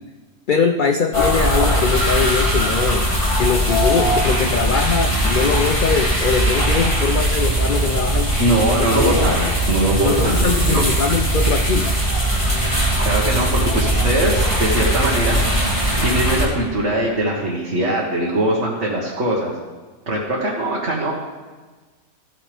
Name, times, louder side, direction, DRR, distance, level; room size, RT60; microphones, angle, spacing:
voice 1, 0.5-3.1 3.4-8.3 8.9-9.5 10.0-11.9, left 6 dB, 55° left, 5 dB, 0.5 m, -21 dB
sound 1, 1.1-16.4, right 1 dB, 20° left, 2.8 m, -19 dB
voice 2, 8.4-9.4 9.7-10.8 13.0-15.4 15.7-19.5 20.1-21.1, right 1 dB, 55° right, -5 dB, 1.9 m, -21 dB
15.0 x 9.4 x 3.4 m, 1.3 s
omnidirectional pair, 1.4 m